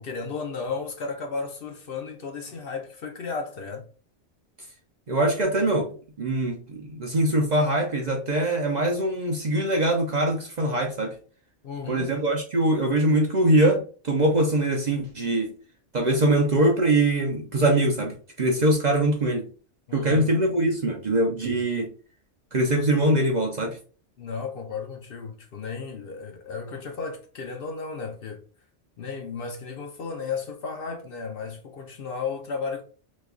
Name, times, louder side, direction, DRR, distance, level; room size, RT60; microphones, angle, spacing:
voice 1, 0.0-3.9 11.6-12.2 19.9-20.3 24.2-28.4 29.0-32.8, left 5 dB, 60° left, 0.8 m, -34 dB
voice 2, 5.1-5.9 6.2-11.2 11.9-15.5 15.9-19.5 19.9-21.9 22.5-23.8, right 1 dB, 45° right, 0.6 m, -23 dB
3.1 x 2.2 x 3.5 m
omnidirectional pair, 1.2 m